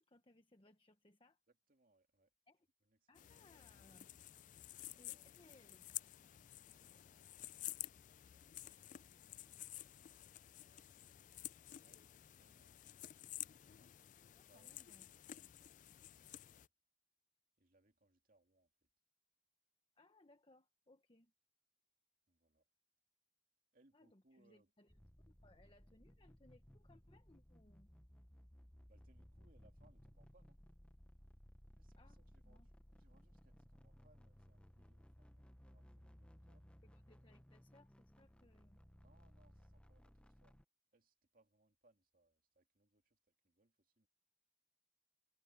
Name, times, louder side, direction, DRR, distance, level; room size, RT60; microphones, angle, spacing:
voice 1, 0.0-1.4 2.5-2.7 3.1-4.1 5.0-6.0 14.3-15.1 20.0-21.3 23.9-24.9 25.4-27.9 32.0-32.2 32.4-32.7 36.8-38.8, left 2 dB, 30° left, 1.2 m, -68 dB
voice 2, 1.5-2.3 2.8-3.3 4.9-5.4 6.4-7.1 8.6-11.6 11.8-12.8 14.5-16.7 17.6-18.9 22.3-22.7 23.7-24.7 28.9-30.6 31.7-36.7 39.0-40.6 40.9-44.1, right 2 dB, 50° right, 2.4 m, -76 dB
sound 1, 3.1-16.7, left 14 dB, 45° left, 0.3 m, -52 dB
sound 2, 24.9-40.6, equal, 5° left, 0.7 m, -62 dB
head